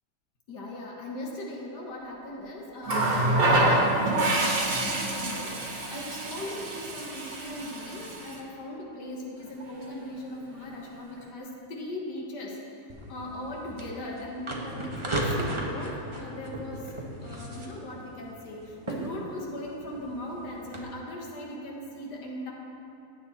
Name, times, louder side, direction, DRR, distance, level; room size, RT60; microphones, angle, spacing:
voice 1, 0.5-16.9 17.2-22.5, left 1 dB, 80° left, -2 dB, 2.1 m, -39 dB
Water tap faucet, 2.8-8.4 9.6-9.8, right 2 dB, 80° right, 2.4 m, -27 dB
sound 1, 12.9-20.8, right 1 dB, 20° right, 1.3 m, -36 dB
17.0 x 9.6 x 4.3 m, 2.9 s
omnidirectional pair, 1.8 m